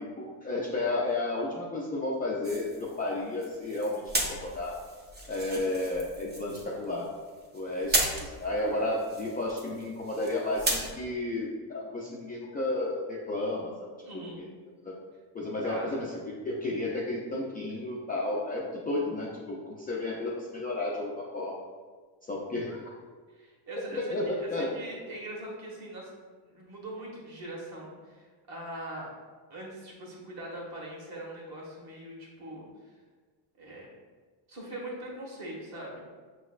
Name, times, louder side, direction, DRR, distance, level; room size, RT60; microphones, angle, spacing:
voice 1, 0.0-4.8 5.3-7.1 7.5-13.9 14.3-14.6 14.8-15.0 15.3-16.1 16.4-21.6 22.2-22.8 23.9-24.7, left 2 dB, 20° left, -5 dB, 0.3 m, -32 dB
sound 1, 2.4-10.9, right 1 dB, 20° right, 0.7 m, -35 dB
voice 2, 14.0-14.4 15.6-16.1 23.3-24.1 24.4-26.1 26.5-29.1 29.5-32.9 33.6-33.9 34.5-36.0, right 1 dB, 50° right, -3 dB, 1.4 m, -41 dB
5.9 x 3.1 x 2.4 m, 1.4 s
cardioid pair, 130°, 48 cm